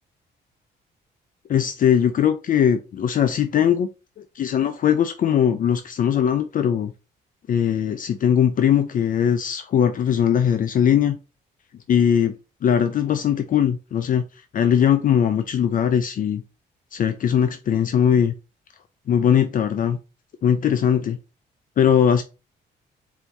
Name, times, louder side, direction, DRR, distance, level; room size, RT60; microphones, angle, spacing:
voice 1, 1.5-3.9 4.4-6.9 7.5-11.2 11.9-12.3 12.6-14.2 14.5-16.4 16.9-18.3 19.1-20.0 20.4-21.2 21.8-22.2, left 8 dB, 50° left, 9 dB, 0.4 m, -20 dB
4.3 x 2.7 x 3.4 m, 0.30 s
cardioid pair, 100°, 18 cm